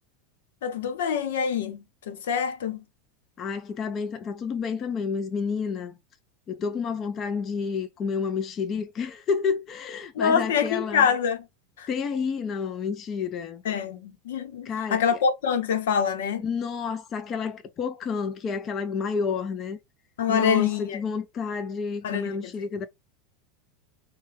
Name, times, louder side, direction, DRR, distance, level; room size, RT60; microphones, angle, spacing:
voice 1, 0.6-2.8 10.1-11.4 11.8-11.9 13.6-16.4 20.2-21.0 22.0-22.5, left 7 dB, 90° left, 0.8 m, -25 dB
voice 2, 3.4-6.0 6.5-11.1 11.9-13.6 14.6-15.2 16.4-19.8 20.3-22.9, left 5 dB, 30° left, 0.4 m, -30 dB
4.4 x 2.2 x 3.4 m
supercardioid pair, 145°, 0 cm